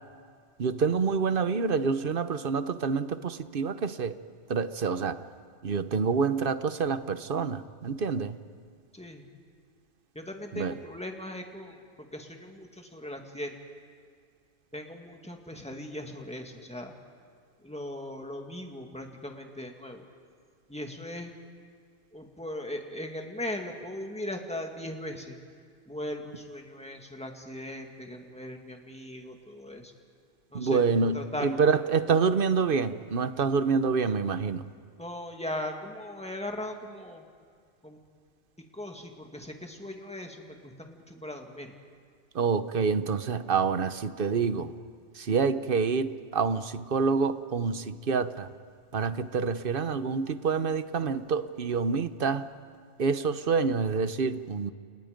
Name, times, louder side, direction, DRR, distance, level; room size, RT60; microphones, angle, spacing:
voice 1, 0.6-4.2 4.5-5.2 5.6-8.4 10.5-10.7 30.5-34.7 42.3-44.7 45.1-48.5 48.9-52.4 53.0-54.7, right 5 dB, 55° right, 12 dB, 1.0 m, -27 dB
voice 2, 8.9-9.2 10.1-13.5 14.7-16.9 17.6-20.0 20.7-21.3 22.1-25.4 25.9-29.9 30.5-31.6 35.0-37.2 37.8-38.0 38.6-41.7, left 1 dB, 5° left, 3 dB, 2.1 m, -39 dB
29.5 x 29.5 x 5.2 m, 2.1 s
omnidirectional pair, 1.1 m